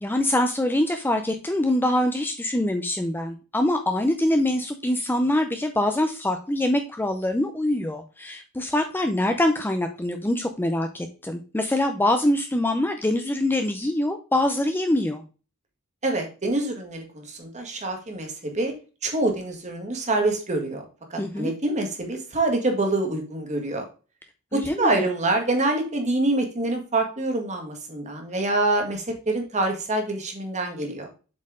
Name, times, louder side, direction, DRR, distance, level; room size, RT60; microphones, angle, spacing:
voice 1, 0.0-15.2 21.2-21.5 24.5-25.0, left 1 dB, 10° left, 6 dB, 0.5 m, -24 dB
voice 2, 16.0-18.7 19.0-20.8 21.1-23.8 24.5-31.1, right 2 dB, 35° right, 3 dB, 1.8 m, -26 dB
7.5 x 4.4 x 3.7 m, 0.34 s
head